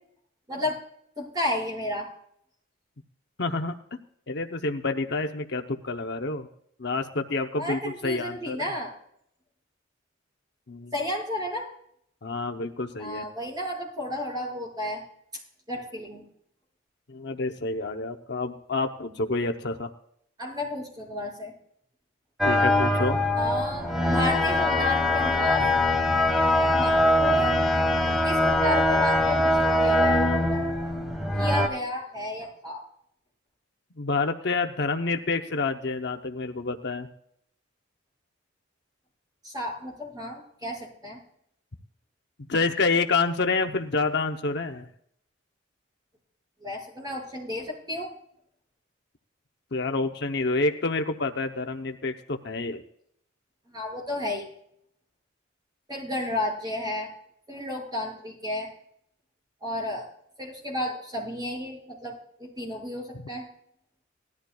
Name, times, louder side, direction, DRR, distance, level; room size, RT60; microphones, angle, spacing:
voice 1, 1.2-2.1 7.5-8.9 10.9-11.7 13.0-15.0 15.7-16.2 20.4-21.5 23.3-25.7 26.7-27.6 28.2-30.7 31.4-32.8 39.4-41.2 46.6-48.1 53.7-54.5 55.9-57.1 57.5-58.7 59.6-60.1 60.4-63.5, left 1 dB, 20° right, -2 dB, 5.9 m, -32 dB
voice 2, 3.4-3.7 4.3-6.5 6.8-8.7 10.7-10.9 12.2-13.2 17.1-19.9 22.4-23.2 34.0-37.1 42.5-44.9 49.7-52.8, left 3 dB, 55° left, 6 dB, 0.8 m, -28 dB
sound 1, 22.4-31.7, left 1 dB, ahead, 1.4 m, -22 dB
19.0 x 13.0 x 2.3 m, 0.69 s
head